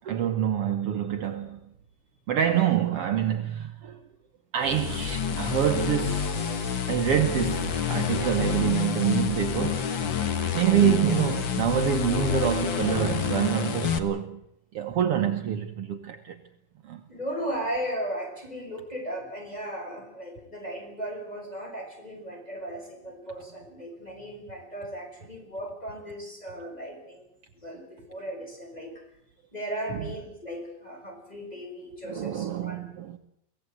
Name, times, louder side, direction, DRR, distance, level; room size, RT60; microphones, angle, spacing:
voice 1, 0.0-1.6 2.3-4.0 4.5-9.9 10.5-14.4 14.7-16.4 16.8-17.0 29.9-30.1 32.1-33.2, right 9 dB, 70° right, 1.4 m, -26 dB
sound 1, 4.6-14.0, left 7 dB, 55° left, 1.4 m, -28 dB
voice 2, 10.4-10.8 17.1-27.3 27.5-28.9 29.5-32.8, right 1 dB, 10° left, 5.5 m, -36 dB
24.5 x 17.5 x 8.0 m
omnidirectional pair, 4.1 m